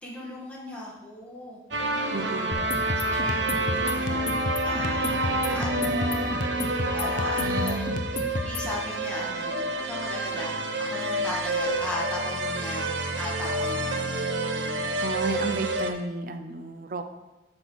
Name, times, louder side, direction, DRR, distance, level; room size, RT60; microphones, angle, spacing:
voice 1, 0.0-2.3 3.0-6.4 6.9-7.8 8.3-14.2 14.5-15.0, left 1 dB, 5° left, -6 dB, 1.8 m, -37 dB
sound 1, 1.7-15.9, right 1 dB, 85° right, 0.8 m, -28 dB
voice 2, 2.1-2.7 7.4-8.0 15.0-17.0, right 3 dB, 50° right, 8 dB, 0.5 m, -32 dB
sound 2, 2.5-8.7, left 2 dB, 45° left, 0.6 m, -32 dB
8.0 x 5.4 x 4.6 m, 1.0 s
head